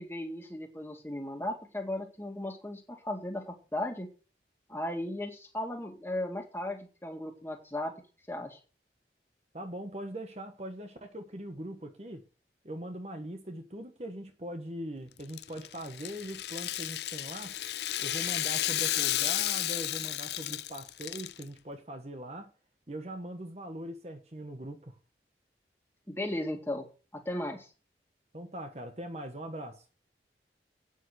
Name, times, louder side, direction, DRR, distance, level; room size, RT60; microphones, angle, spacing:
voice 1, 0.0-4.1 4.7-7.9 8.3-8.6 26.1-27.7, left 1 dB, 15° left, 2.1 m, -36 dB
voice 2, 9.5-12.2 12.6-17.5 18.0-22.5 22.9-25.0 28.3-29.8, right 1 dB, 35° right, 1.3 m, -41 dB
Rattle (instrument), 15.2-21.4, left 14 dB, 70° left, 0.5 m, -33 dB
9.2 x 6.4 x 7.9 m
head